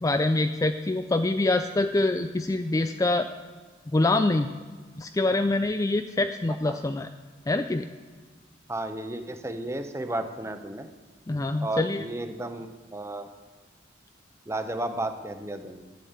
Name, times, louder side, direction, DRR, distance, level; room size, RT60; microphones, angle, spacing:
voice 1, 0.0-3.3 3.9-4.5 5.0-7.1 7.5-7.9 11.3-12.1, left 2 dB, 15° left, 8 dB, 0.3 m, -25 dB
voice 2, 8.7-10.9 11.6-13.3 14.5-15.8, right 2 dB, 15° right, 8 dB, 0.8 m, -33 dB
12.5 x 8.5 x 8.0 m, 1.4 s
head